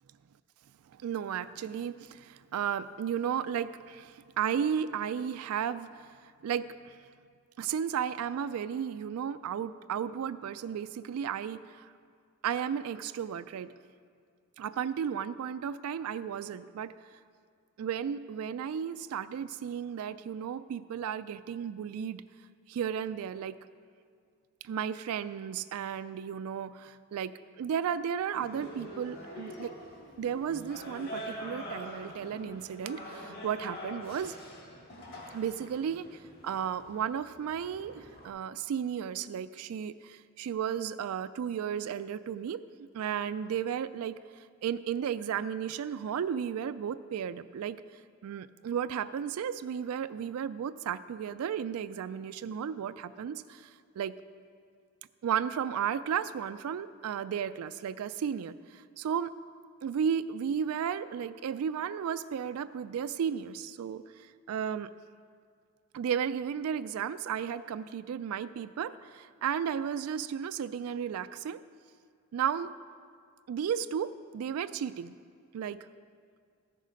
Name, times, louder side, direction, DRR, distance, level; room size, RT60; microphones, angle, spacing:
voice 1, 1.0-7.0 7.6-11.9 12.4-13.7 14.6-16.9 17.8-22.2 22.7-23.6 24.6-29.7 30.2-34.4 35.3-42.6 42.9-47.8 48.2-54.1 55.2-59.3 59.8-64.9 65.9-71.6 72.3-72.7 73.5-75.1 75.5-75.8, right 8 dB, 90° right, 13 dB, 0.3 m, -34 dB
sound 1, 28.3-38.3, equal, 45° left, 2.1 m, -45 dB
14.0 x 6.5 x 5.2 m, 2.2 s
head